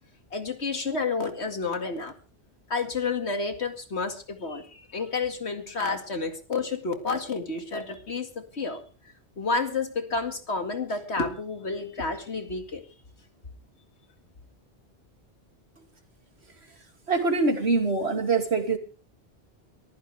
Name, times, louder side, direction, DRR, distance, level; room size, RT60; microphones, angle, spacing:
voice 1, 0.3-2.1 2.7-8.8 9.4-12.8, left 4 dB, 80° left, 6 dB, 2.5 m, -30 dB
voice 2, 17.1-18.8, right 3 dB, 75° right, 5 dB, 3.0 m, -24 dB
22.5 x 15.0 x 3.5 m, 0.35 s
omnidirectional pair, 1.1 m